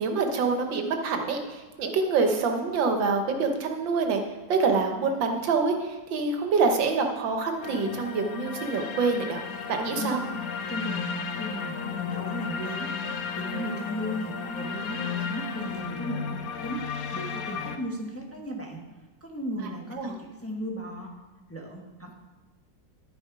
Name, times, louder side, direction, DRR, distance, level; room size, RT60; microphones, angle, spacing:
voice 1, 0.0-4.2 4.5-9.4 9.7-10.2 19.6-20.2, right 4 dB, 90° right, 4 dB, 1.8 m, -26 dB
sound 1, 7.6-17.8, left 6 dB, 60° left, 1.1 m, -34 dB
voice 2, 10.7-16.8 17.1-18.8 19.2-21.1 21.5-22.1, equal, 10° left, -1 dB, 1.2 m, -36 dB
11.5 x 7.0 x 4.7 m, 1.2 s
omnidirectional pair, 2.0 m